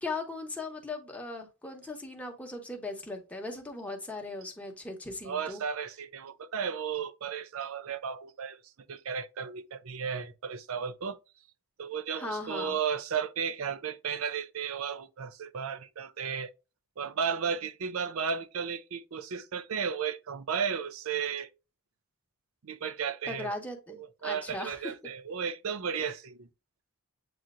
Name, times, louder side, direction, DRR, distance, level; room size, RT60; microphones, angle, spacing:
voice 1, 0.0-5.6 12.1-12.8 23.3-24.0 24.2-24.8, left 2 dB, 5° left, 0.9 m, -38 dB
voice 2, 5.2-8.6 8.9-11.2 11.8-16.5 17.0-21.5 22.6-23.5 23.9-26.5, right 7 dB, 65° right, 0.5 m, -34 dB
7.6 x 2.8 x 2.4 m
head